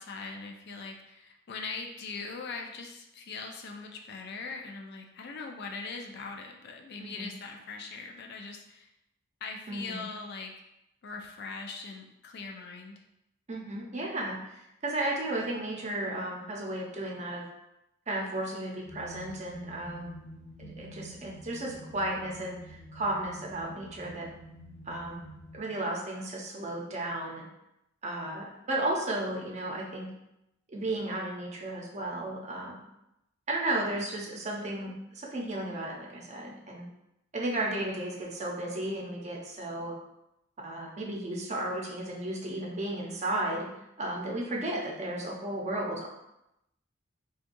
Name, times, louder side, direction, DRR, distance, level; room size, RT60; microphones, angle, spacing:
voice 1, 0.0-8.9 9.4-10.5 11.0-13.0, left 4 dB, 55° left, 2 dB, 0.4 m, -41 dB
voice 2, 9.7-10.0 13.5-17.4 18.1-20.1 20.6-24.3 24.9-25.2 25.5-27.5 28.0-30.1 30.7-32.8 33.5-36.9 37.3-39.9 40.6-43.7 44.0-46.1, right 1 dB, 35° right, -2 dB, 0.7 m, -34 dB
sound 1, 18.8-25.6, equal, 10° left, 0.6 m, -48 dB
4.3 x 2.3 x 2.6 m, 0.85 s
head